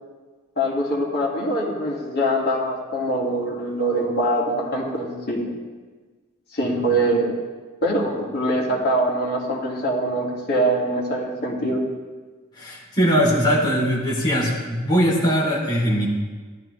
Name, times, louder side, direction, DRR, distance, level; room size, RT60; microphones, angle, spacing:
voice 1, 0.6-5.5 6.5-7.4 7.8-11.8, right 1 dB, 45° left, -3 dB, 2.7 m, -23 dB
voice 2, 12.6-16.1, equal, 20° left, -4 dB, 3.5 m, -20 dB
14.5 x 12.5 x 3.4 m, 1.4 s
head